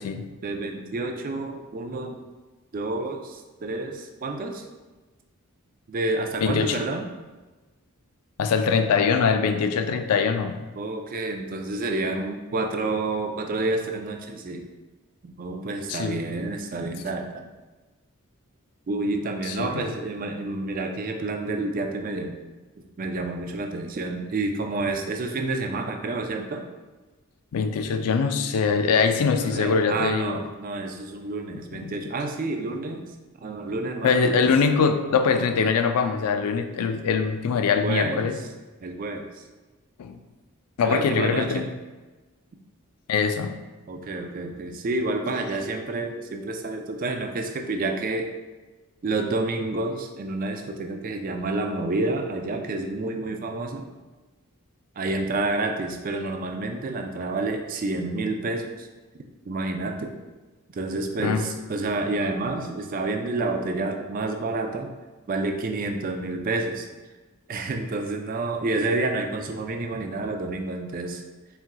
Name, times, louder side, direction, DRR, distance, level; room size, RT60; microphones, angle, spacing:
voice 1, 0.4-2.2 2.7-4.7 5.9-7.1 10.7-14.7 15.2-17.5 18.9-22.4 23.0-26.7 29.4-33.1 33.4-34.5 37.8-38.3 38.8-39.4 40.8-41.7 43.9-48.3 49.0-53.9 55.0-58.9 59.5-60.1 60.7-64.9 65.3-66.9 67.5-71.2, right 2 dB, 40° right, 4 dB, 0.3 m, -29 dB
voice 2, 6.4-6.8 8.4-10.6 15.9-16.2 19.4-19.9 27.5-30.4 31.7-31.9 34.0-38.4 40.0-40.2 40.8-41.7 43.1-43.6 61.2-61.5, left 5 dB, 85° left, 8 dB, 0.4 m, -23 dB
4.3 x 3.6 x 2.2 m, 1.2 s
head